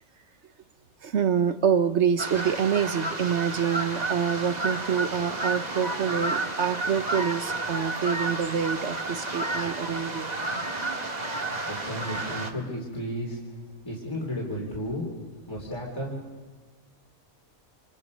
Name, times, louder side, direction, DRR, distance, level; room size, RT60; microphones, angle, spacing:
voice 1, 1.0-10.3, right 7 dB, 55° right, 11 dB, 1.2 m, -26 dB
sound 1, 2.2-12.5, right 2 dB, 30° right, 1.8 m, -31 dB
voice 2, 11.7-15.1 15.5-16.2, equal, 20° left, -3 dB, 3.7 m, -33 dB
28.5 x 27.5 x 5.4 m, 1.3 s
omnidirectional pair, 1.5 m